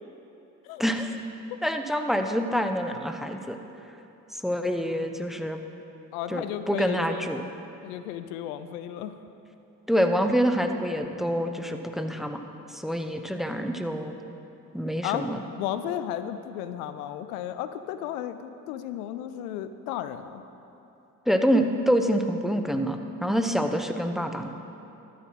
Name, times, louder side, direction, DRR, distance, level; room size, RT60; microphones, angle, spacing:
voice 1, 0.8-1.2 1.6-3.6 4.4-5.6 6.3-7.4 9.9-12.4 12.7-14.1 14.7-15.4 21.3-24.5, equal, ahead, 6 dB, 0.9 m, -26 dB
voice 2, 6.1-7.3 7.8-9.2 15.0-15.2 15.6-20.4, left 11 dB, 80° left, 11 dB, 0.5 m, -34 dB
12.5 x 8.7 x 5.7 m, 3.0 s
hypercardioid pair, 40°, 43 cm